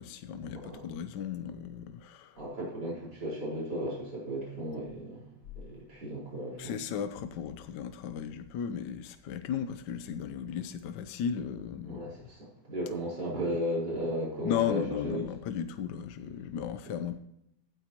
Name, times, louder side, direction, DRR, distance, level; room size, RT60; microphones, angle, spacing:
voice 1, 0.0-2.4 6.6-12.1 14.4-17.2, left 8 dB, 75° left, 1.3 m, -35 dB
voice 2, 0.5-0.9 2.3-5.2 5.6-6.7 11.8-15.2, equal, 65° right, 5.5 m, -35 dB
16.0 x 9.2 x 3.0 m
omnidirectional pair, 2.0 m